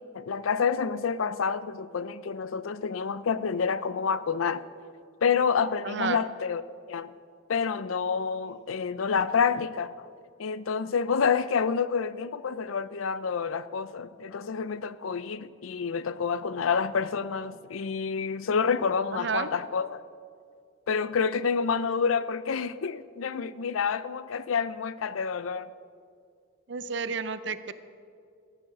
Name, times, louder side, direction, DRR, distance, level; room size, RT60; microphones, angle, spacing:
voice 1, 0.1-4.6 5.2-6.6 6.9-7.1 7.5-10.1 10.4-20.0 20.9-25.7, left 6 dB, 85° left, 0.5 m, -28 dB
voice 2, 5.8-6.2 19.1-19.5 26.7-27.7, right 5 dB, 60° right, 0.6 m, -31 dB
13.5 x 10.0 x 6.3 m
head